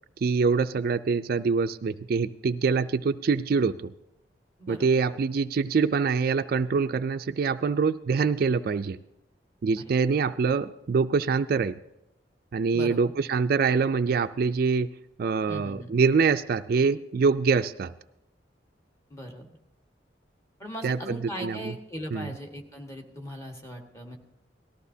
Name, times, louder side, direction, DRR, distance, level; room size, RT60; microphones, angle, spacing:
voice 1, 0.2-3.9 4.7-9.0 9.6-11.8 12.5-14.9 15.2-17.9 20.8-21.8 22.1-22.4, right 5 dB, 55° right, 11 dB, 0.4 m, -25 dB
voice 2, 4.6-5.2 9.9-10.0 12.7-13.1 15.5-15.9 19.1-19.5 20.6-24.2, equal, 15° left, 1 dB, 1.5 m, -39 dB
18.5 x 13.5 x 2.7 m, 0.91 s
head